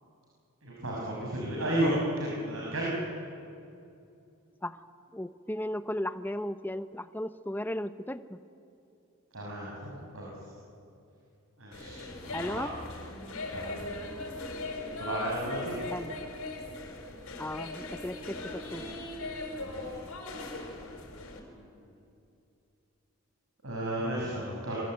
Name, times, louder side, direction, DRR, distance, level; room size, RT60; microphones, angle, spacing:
voice 1, 0.6-2.9 9.3-10.3 11.6-12.7 13.5-13.8 15.0-15.8 19.6-20.0 21.1-21.6 23.6-24.8, right 1 dB, 75° right, -4 dB, 6.0 m, -33 dB
voice 2, 5.1-8.4 12.3-12.7 15.9-16.2 17.4-18.9, left 1 dB, 10° left, 11 dB, 0.7 m, -35 dB
sound 1, 11.7-21.4, left 2 dB, 90° left, 5.0 m, -39 dB
28.5 x 23.0 x 9.0 m, 2.6 s
head